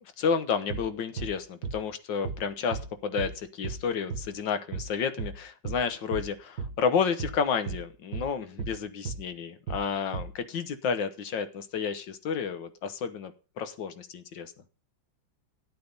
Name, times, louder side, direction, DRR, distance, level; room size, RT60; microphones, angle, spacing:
voice 1, 0.2-13.3 13.6-14.5, left 6 dB, 70° left, 9 dB, 1.8 m, -31 dB
sound 1, 0.7-0.9 1.2-1.4 1.6-1.8 2.2-2.4 2.7-2.9 3.2-3.4 3.6-3.8 4.1-4.3 4.7-4.9 5.2-5.4 5.6-5.8 6.1-6.3 6.6-6.8 7.2-7.4 7.7-7.9 8.1-8.3 8.6-8.8 9.0-9.2 9.7-9.9 10.1-10.3, right 5 dB, 50° right, 1.4 m, -35 dB
11.5 x 8.5 x 5.4 m, 0.35 s
omnidirectional pair, 2.1 m